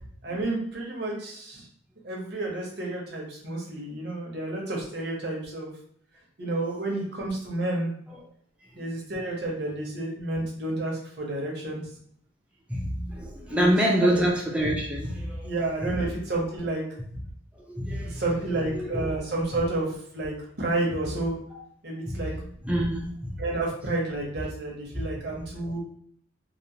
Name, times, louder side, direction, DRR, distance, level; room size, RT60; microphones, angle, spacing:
voice 1, 0.2-1.6 2.0-5.7 6.4-7.9 8.8-11.8 13.5-13.7 14.0-14.3 15.4-16.8 18.0-21.4 21.8-22.3 23.4-25.8, right 2 dB, 55° right, -2 dB, 0.8 m, -30 dB
voice 2, 12.7-15.5 15.9-16.0 17.5-18.2 18.7-19.1 22.1-23.4 25.0-25.1 25.5-25.7, equal, 5° right, -4 dB, 0.4 m, -27 dB
2.9 x 2.0 x 2.7 m, 0.62 s
head